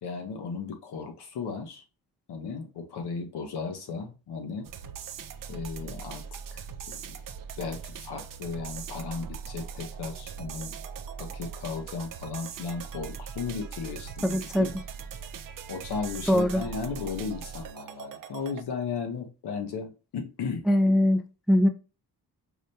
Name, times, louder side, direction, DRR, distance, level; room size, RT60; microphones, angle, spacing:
voice 1, 0.0-1.8 2.3-4.7 5.5-7.0 7.6-10.7 11.2-14.7 15.7-20.7, left 5 dB, 85° left, 0.9 m, -35 dB
sound 1, 4.6-18.6, right 7 dB, 55° right, 0.5 m, -40 dB
voice 2, 14.2-14.7 16.3-16.6 20.7-21.7, left 1 dB, ahead, 0.3 m, -22 dB
4.8 x 2.2 x 2.7 m
cardioid pair, 90°, 39 cm